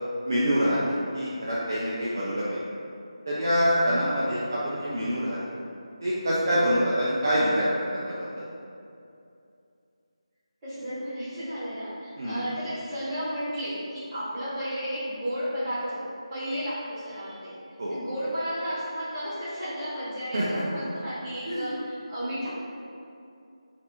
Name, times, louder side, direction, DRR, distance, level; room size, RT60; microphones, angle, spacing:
voice 1, 0.2-0.8 1.1-2.6 3.3-5.4 6.0-8.2 12.2-12.4 17.8-18.0 20.3-20.6 21.5-21.7, equal, 35° right, -7 dB, 0.4 m, -25 dB
voice 2, 10.6-17.6 17.9-22.5, equal, 10° right, -17 dB, 0.9 m, -33 dB
3.1 x 2.4 x 2.8 m, 2.5 s
figure-of-eight pair, 175°, 3 cm